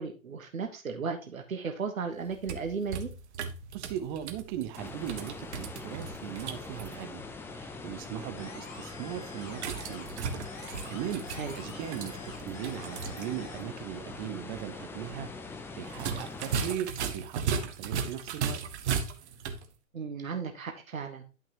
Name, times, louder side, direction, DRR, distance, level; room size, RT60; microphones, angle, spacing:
voice 1, 0.0-3.1 11.4-11.6 19.9-21.2, right 5 dB, 75° right, 5 dB, 1.5 m, -35 dB
sound 1, 2.2-6.9 9.5-13.3 13.6-13.7 15.9-19.7, right 6 dB, 55° right, 1.4 m, -36 dB
voice 2, 3.7-7.2 7.5-10.1 10.9-18.6, right 11 dB, 35° right, 10 dB, 1.0 m, -39 dB
sound 2, 4.8-16.7, left 3 dB, 5° left, 0.5 m, -43 dB
sound 3, 8.4-10.2 10.4-13.6, left 3 dB, 65° left, 2.7 m, -48 dB
11.0 x 5.9 x 3.0 m, 0.31 s
figure-of-eight pair, 110°, 41 cm